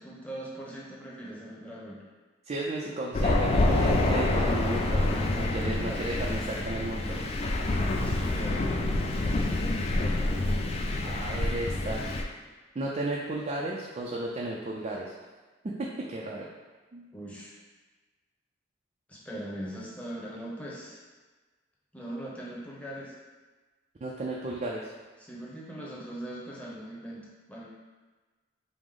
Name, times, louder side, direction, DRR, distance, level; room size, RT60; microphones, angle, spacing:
voice 1, 0.0-2.0 5.6-6.0 8.0-8.7 9.1-9.5 9.8-10.4 17.1-17.5 19.1-21.0 21.9-23.1 25.2-27.7, right 1 dB, 5° left, -6 dB, 0.8 m, -40 dB
voice 2, 2.5-7.4 11.0-12.0 12.8-15.1 15.6-16.5 16.9-17.1 24.0-24.9, right 2 dB, 35° right, -3 dB, 0.4 m, -34 dB
Thunder, 3.1-12.2, left 2 dB, 35° left, 0.3 m, -27 dB
4.9 x 2.0 x 3.7 m, 1.3 s
head